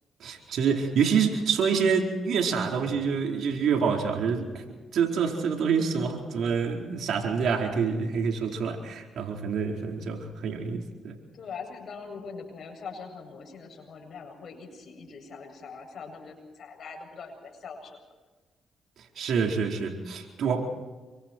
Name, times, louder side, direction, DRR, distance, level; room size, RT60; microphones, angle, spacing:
voice 1, 0.2-4.6 4.9-11.2 19.2-20.6, right 6 dB, 75° right, 1 dB, 4.5 m, -27 dB
voice 2, 11.3-18.0, left 5 dB, 65° left, 3 dB, 7.9 m, -42 dB
28.5 x 24.5 x 4.7 m, 1.3 s
cardioid pair, 70°, 0 cm